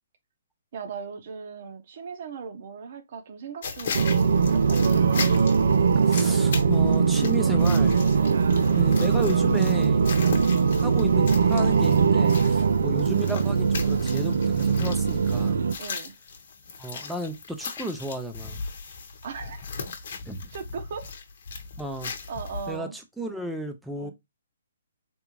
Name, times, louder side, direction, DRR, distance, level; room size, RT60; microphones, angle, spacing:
voice 1, 0.7-5.3 8.1-8.5 10.2-10.5 12.5-12.8 15.8-16.1 19.2-19.7 20.5-21.1 22.3-23.0 24.0-24.1, right 6 dB, 50° right, 0.7 m, -39 dB
sound 1, 3.6-22.8, left 5 dB, 60° left, 0.9 m, -38 dB
sound 2, 3.9-15.7, right 5 dB, 75° right, 0.3 m, -21 dB
voice 2, 6.0-8.0 8.7-10.1 10.8-15.6 16.8-18.6 20.3-20.5 21.8-22.1 22.7-24.1, right 1 dB, ahead, 0.5 m, -34 dB
3.5 x 2.5 x 3.0 m
hypercardioid pair, 150°, 0 cm